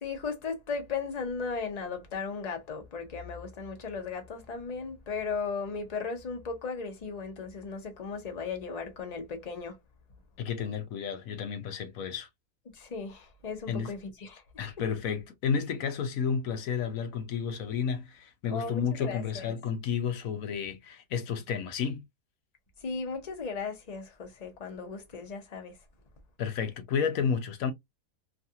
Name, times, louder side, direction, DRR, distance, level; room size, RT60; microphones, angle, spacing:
voice 1, 0.0-9.8 12.7-14.4 18.5-19.5 22.8-25.7, left 5 dB, 40° left, 0.6 m, -36 dB
voice 2, 10.4-12.3 13.7-13.9 14.6-22.0 26.4-27.7, left 6 dB, 65° left, 0.9 m, -31 dB
3.2 x 2.4 x 2.7 m
omnidirectional pair, 1.8 m